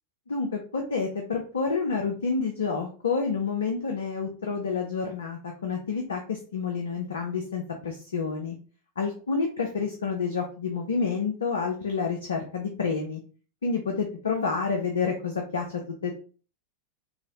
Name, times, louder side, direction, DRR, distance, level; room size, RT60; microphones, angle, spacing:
voice 1, 0.3-8.6 9.0-13.2 13.6-16.1, left 5 dB, 70° left, 2 dB, 0.5 m, -29 dB
3.9 x 2.0 x 2.8 m, 0.38 s
figure-of-eight pair, 90°, 0 cm